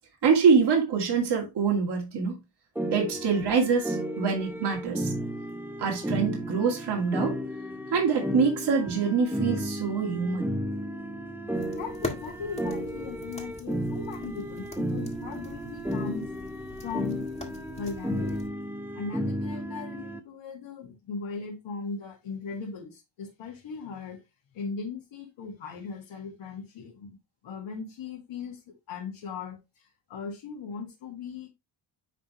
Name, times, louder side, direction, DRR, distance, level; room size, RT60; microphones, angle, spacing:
voice 1, 0.2-2.3 2.9-5.1 5.8-7.4 7.9-10.5, right 5 dB, 60° right, 2.4 m, -25 dB
sound 1, 2.8-20.2, equal, 5° right, 0.8 m, -33 dB
sound 2, 11.5-18.5, left 2 dB, 15° left, 1.8 m, -42 dB
voice 2, 11.7-16.3 16.8-18.5 18.9-24.2 24.5-27.2 27.4-28.6 28.9-31.5, left 5 dB, 80° left, 1.8 m, -38 dB
9.9 x 3.6 x 3.0 m
cardioid pair, 105°, 45 cm